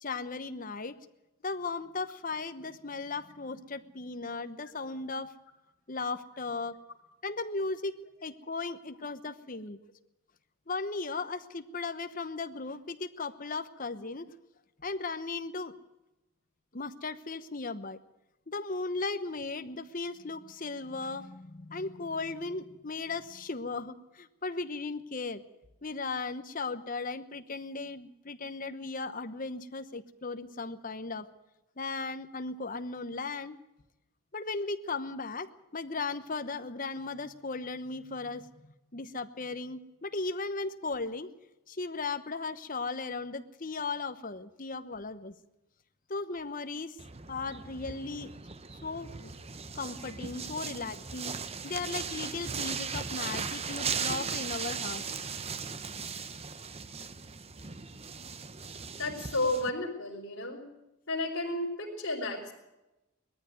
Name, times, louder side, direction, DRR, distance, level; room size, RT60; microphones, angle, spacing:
voice 1, 0.0-0.9 1.4-5.3 5.9-6.7 7.2-9.8 10.7-14.3 14.8-15.7 16.7-18.0 18.5-25.4 25.8-31.3 31.8-33.6 34.3-41.3 41.7-45.3 46.1-47.0 47.3-48.3 48.8-49.3 49.7-51.3 51.6-55.0, left 3 dB, 40° left, 10 dB, 1.0 m, -36 dB
sound 1, 47.0-59.7, right 5 dB, 25° right, 0.7 m, -38 dB
voice 2, 59.0-60.7 61.1-62.5, left 2 dB, 55° left, -6 dB, 4.5 m, -33 dB
20.0 x 14.0 x 9.2 m, 0.95 s
head